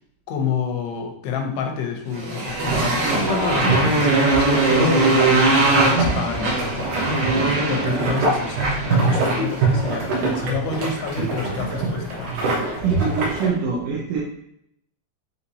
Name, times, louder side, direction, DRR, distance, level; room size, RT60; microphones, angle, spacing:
voice 1, 0.3-6.9 7.7-8.6 8.9-12.3 12.7-13.0, left 6 dB, 85° left, 2 dB, 2.8 m, -28 dB
Motorcycle, 2.1-9.5, right 2 dB, 50° right, 2.1 m, -21 dB
sound 1, 2.5-13.5, right 3 dB, 70° right, 2.0 m, -25 dB
voice 2, 12.8-14.2, right 5 dB, 90° right, -3 dB, 1.8 m, -24 dB
6.7 x 2.9 x 2.7 m, 0.74 s
omnidirectional pair, 4.8 m